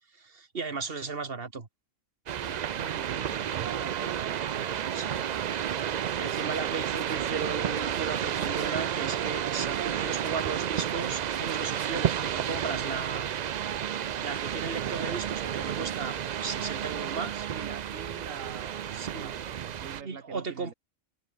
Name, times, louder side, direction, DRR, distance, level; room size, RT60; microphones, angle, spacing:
voice 1, 0.2-1.7 4.9-5.3 6.2-13.3 14.2-17.5 18.9-19.3 20.0-20.7, right 4 dB, 45° right, 2.2 m, -36 dB
sound 1, 2.3-20.0, right 9 dB, 70° right, 0.4 m, -31 dB
voice 2, 2.4-5.7 17.5-20.7, right 7 dB, 90° right, 1.8 m, -44 dB
Whispering, 4.8-16.2, left 2 dB, 45° left, 4.5 m, -59 dB
omnidirectional pair, 1.3 m